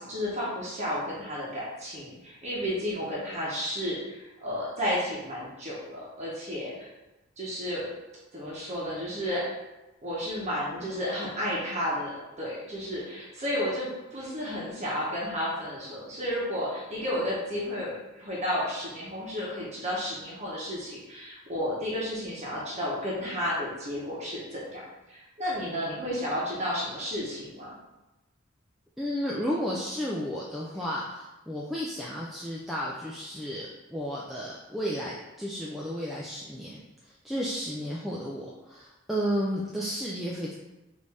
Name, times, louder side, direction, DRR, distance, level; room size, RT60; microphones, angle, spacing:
voice 1, 0.0-6.9 7.4-7.9 8.3-9.5 10.0-24.8 25.1-27.8, equal, 35° right, -6 dB, 1.0 m, -32 dB
voice 2, 29.0-40.5, equal, ahead, -5 dB, 0.3 m, -33 dB
5.0 x 2.7 x 3.4 m, 1.0 s
head